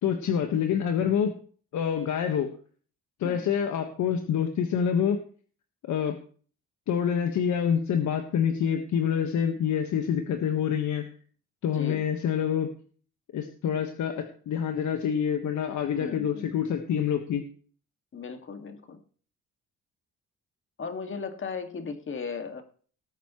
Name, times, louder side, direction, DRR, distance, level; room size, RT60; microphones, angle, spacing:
voice 1, 0.0-1.4 1.7-2.5 3.2-5.2 5.8-6.2 6.9-11.1 11.6-12.7 13.3-17.5, left 8 dB, 75° left, 5 dB, 1.5 m, -27 dB
voice 2, 16.0-16.5 18.1-19.0 20.8-22.6, left 5 dB, 40° left, 6 dB, 2.1 m, -36 dB
19.0 x 8.3 x 3.1 m, 0.43 s
cardioid pair, 90°, 30 cm